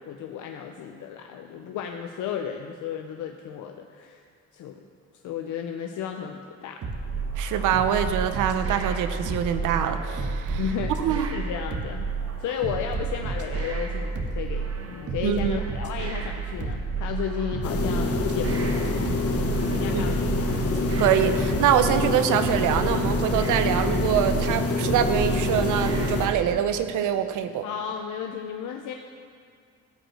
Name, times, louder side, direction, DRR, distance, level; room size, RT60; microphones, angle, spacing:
voice 1, 0.0-4.3 4.5-4.8 5.1-6.8 10.6-10.9 11.3-12.1 12.4-19.1 19.7-20.5 27.6-28.9, left 8 dB, 80° left, 4 dB, 0.7 m, -33 dB
sound 1, 6.8-26.4, right 4 dB, 50° right, 1.3 m, -31 dB
voice 2, 7.4-10.6 11.0-11.3 15.2-15.6 19.9-20.0 20.3-20.4 21.0-27.6, right 9 dB, 90° right, 9 dB, 0.8 m, -24 dB
sound 2, 17.6-26.3, left 3 dB, 50° left, 1.2 m, -26 dB
15.0 x 5.0 x 7.7 m, 2.2 s
cardioid pair, 90°, 30 cm